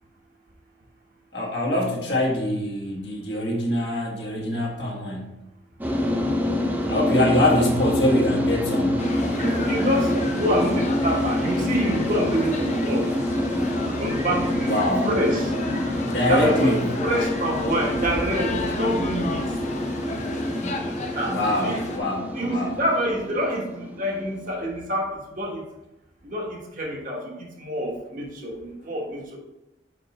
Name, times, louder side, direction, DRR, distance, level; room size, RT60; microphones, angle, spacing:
voice 1, 1.3-5.4 6.9-9.1 14.7-15.1 16.0-16.8 21.3-22.3 22.5-22.7, left 1 dB, 65° left, -3 dB, 1.7 m, -24 dB
sound 1, 5.8-24.5, left 1 dB, 10° right, 0.7 m, -26 dB
sound 2, 9.0-22.0, left 3 dB, 40° left, 0.6 m, -34 dB
voice 2, 9.4-13.1 14.0-15.5 16.3-19.4 21.1-21.8 22.3-25.1 25.4-25.6 26.2-27.2 27.6-29.4, equal, 45° right, -1 dB, 1.4 m, -27 dB
5.4 x 5.2 x 4.2 m, 0.93 s
head